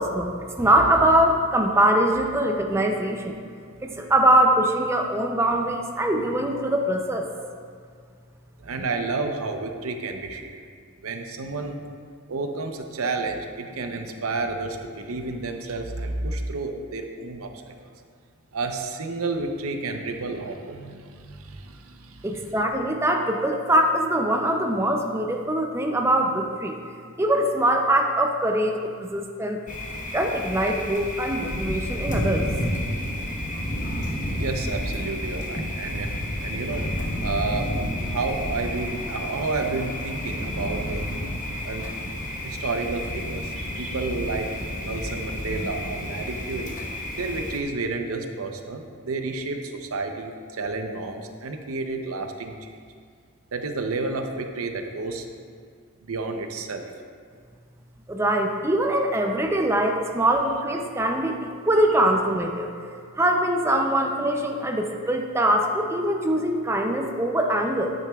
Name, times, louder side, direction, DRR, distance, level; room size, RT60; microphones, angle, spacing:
voice 1, 0.0-3.4 3.8-7.3 22.2-26.8 27.2-29.6 30.1-32.5 58.1-61.4 61.7-62.7 63.1-67.9, right 1 dB, 10° right, 2 dB, 0.4 m, -22 dB
voice 2, 8.6-10.6 11.0-11.8 12.3-17.5 18.5-22.6 34.4-36.9 37.2-37.7 38.0-41.1 41.6-41.9 42.4-44.5 44.8-46.8 47.2-52.8 53.5-55.3 56.0-56.9, right 3 dB, 80° right, 5 dB, 0.7 m, -31 dB
Thunder, 29.7-47.6, left 1 dB, 35° left, 1.1 m, -30 dB
10.5 x 9.2 x 2.3 m, 2.1 s
head